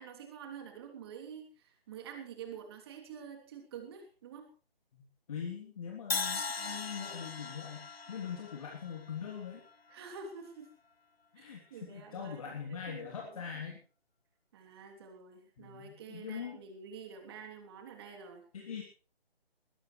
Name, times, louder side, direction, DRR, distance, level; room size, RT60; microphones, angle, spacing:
voice 1, 0.0-4.5 8.1-8.2 9.9-10.7 11.4-13.4 14.5-18.4, right 6 dB, 25° right, 3 dB, 3.1 m, -48 dB
voice 2, 5.3-9.6 11.3-13.8 15.6-16.6 18.5-18.8, left 7 dB, 35° left, 0 dB, 3.1 m, -42 dB
Crash cymbal, 6.1-10.1, left 5 dB, 75° left, 0.9 m, -39 dB
20.0 x 16.5 x 3.3 m, 0.37 s
figure-of-eight pair, 150°, 30 cm